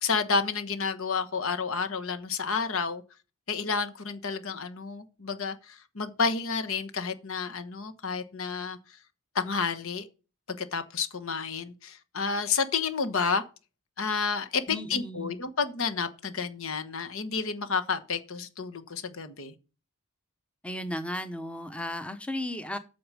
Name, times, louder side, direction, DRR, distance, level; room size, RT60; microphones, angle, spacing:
voice 1, 0.0-3.0 3.5-8.8 9.3-10.1 10.5-13.4 14.0-19.5, left 5 dB, 65° left, 1.3 m, -30 dB
voice 2, 14.7-15.4 20.6-22.8, left 1 dB, 5° left, 0.8 m, -35 dB
8.6 x 7.1 x 6.3 m
head